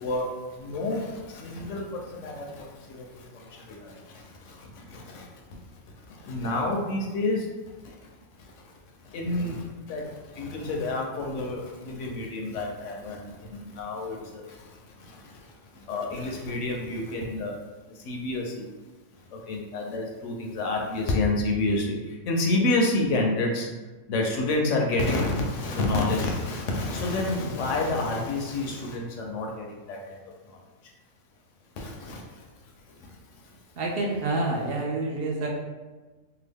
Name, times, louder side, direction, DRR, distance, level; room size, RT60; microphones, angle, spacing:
voice 1, 0.0-17.6 17.9-18.7 19.1-23.7 24.1-30.9 31.7-33.6, left 2 dB, 70° left, 0 dB, 0.8 m, -30 dB
voice 2, 33.8-35.6, right 2 dB, 65° right, -1 dB, 0.5 m, -28 dB
2.8 x 2.3 x 3.3 m, 1.2 s
omnidirectional pair, 1.4 m